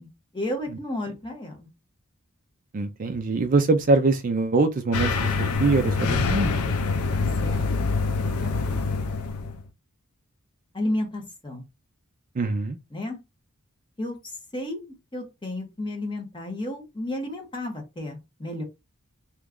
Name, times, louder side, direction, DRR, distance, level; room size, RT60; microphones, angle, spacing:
voice 1, 0.0-1.7 7.1-7.6 8.2-8.8 10.7-11.6 12.9-13.2 14.0-18.6, left 1 dB, 20° left, 1.0 m, -33 dB
voice 2, 2.7-6.5 12.4-12.8, right 3 dB, 40° right, 0.4 m, -23 dB
sound 1, 4.9-9.6, left 4 dB, 80° left, 0.5 m, -25 dB
3.0 x 2.4 x 3.5 m
head